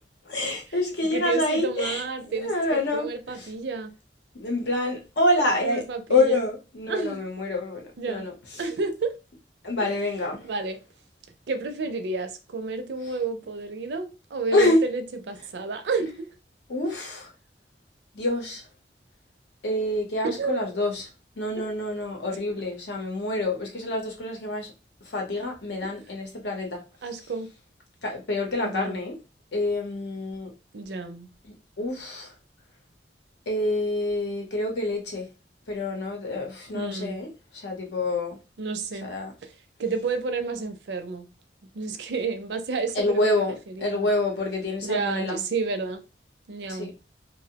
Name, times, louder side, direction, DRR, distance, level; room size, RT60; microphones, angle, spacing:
voice 1, 0.3-2.0 2.3-3.1 3.3-3.5 4.3-5.8 6.1-8.3 9.6-10.5 14.5-14.8 16.7-17.3 18.1-18.6 19.6-21.1 21.4-24.7 25.1-26.8 28.0-29.1 29.5-30.5 31.8-32.3 33.5-35.3 35.7-37.3 37.5-38.4 39.0-39.3 42.9-45.4 46.7-46.9, left 2 dB, 70° left, 0.8 m, -27 dB
voice 2, 1.1-3.9 5.6-6.4 6.9-7.2 8.0-8.3 8.6-9.1 9.8-10.0 10.4-10.8 11.5-16.3 20.2-20.7 21.6-21.7 25.8-25.9 27.0-27.5 28.6-29.0 30.7-31.3 36.7-37.2 38.6-39.1 39.4-39.5 39.8-41.3 41.7-44.1 44.8-46.0 46.5-46.9, right 4 dB, 70° right, 0.4 m, -30 dB
2.6 x 2.0 x 2.8 m
head